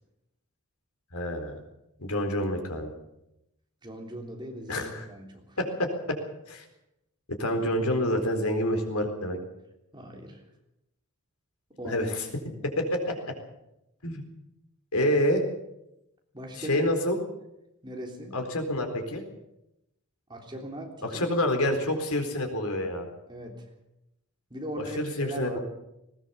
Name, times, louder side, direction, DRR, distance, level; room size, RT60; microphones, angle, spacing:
voice 1, 1.1-1.6 2.0-2.9 4.7-5.1 5.6-6.2 6.5-6.6 7.3-9.4 11.8-12.3 12.8-13.1 14.0-14.2 14.9-15.4 16.5-17.2 18.3-19.2 21.0-23.1 24.8-25.6, left 1 dB, 80° left, 4 dB, 4.1 m, -27 dB
voice 2, 3.8-5.6 9.9-10.4 11.8-12.1 12.4-12.6 16.3-16.9 17.8-18.3 20.3-21.2 23.3-23.5 24.5-25.6, equal, 20° right, 1 dB, 3.5 m, -39 dB
19.5 x 18.5 x 7.0 m, 0.87 s
head